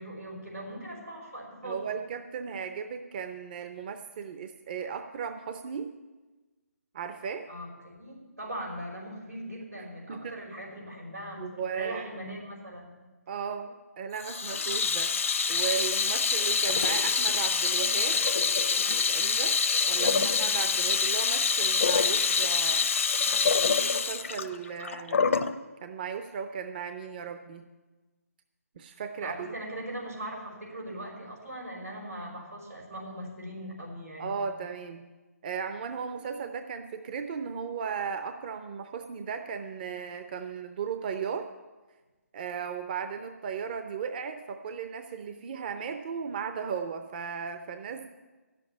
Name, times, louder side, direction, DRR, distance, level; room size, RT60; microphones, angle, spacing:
voice 1, 0.0-1.9 7.5-13.0 20.0-20.3 29.2-34.4, right 1 dB, 90° right, -2 dB, 5.4 m, -40 dB
voice 2, 1.6-5.9 6.9-7.5 10.1-10.4 11.4-12.0 13.3-18.2 19.1-19.6 19.9-20.1 20.4-22.9 23.8-25.4 25.8-27.7 28.8-29.5 34.2-35.1 35.4-41.5 42.3-48.1, right 6 dB, 35° right, 7 dB, 0.6 m, -36 dB
Water tap faucet / Sink (filling or washing), 14.2-25.5, left 5 dB, 55° left, 0.7 m, -26 dB
10.5 x 7.7 x 9.6 m, 1.2 s
figure-of-eight pair, 145°, 8 cm